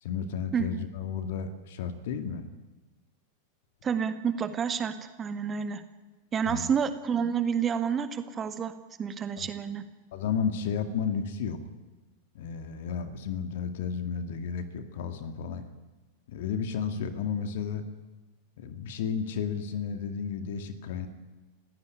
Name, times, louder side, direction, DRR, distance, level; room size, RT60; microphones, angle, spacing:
voice 1, 0.0-2.5 6.5-6.7 10.1-11.6 12.3-15.7 16.3-17.8 18.6-21.1, left 6 dB, 55° left, 9 dB, 2.2 m, -32 dB
voice 2, 0.5-0.9 3.8-5.8 6.3-8.7 9.0-9.8, right 7 dB, 25° right, 10 dB, 1.8 m, -29 dB
30.0 x 16.0 x 9.8 m, 1.2 s
figure-of-eight pair, 90°, 0 cm